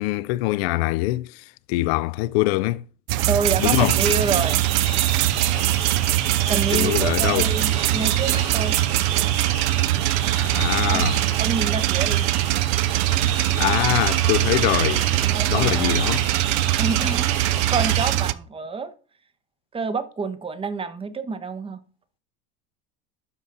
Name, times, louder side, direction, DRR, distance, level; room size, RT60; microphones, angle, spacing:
voice 1, 0.0-2.8 3.6-4.0 6.7-7.5 10.3-11.2 13.6-15.1 15.5-16.3, left 19 dB, 70° left, 0.4 m, -23 dB
sound 1, 3.1-18.3, right 16 dB, 60° right, 0.5 m, -22 dB
voice 2, 3.3-4.6 6.5-8.8 10.9-11.1 11.4-12.2 15.2-16.1 16.8-17.4 17.7-18.9 19.7-21.8, right 4 dB, 15° right, 0.7 m, -28 dB
sound 2, 3.6-18.1, right 7 dB, 80° right, 2.4 m, -30 dB
12.0 x 4.1 x 3.9 m
supercardioid pair, 115°, 32 cm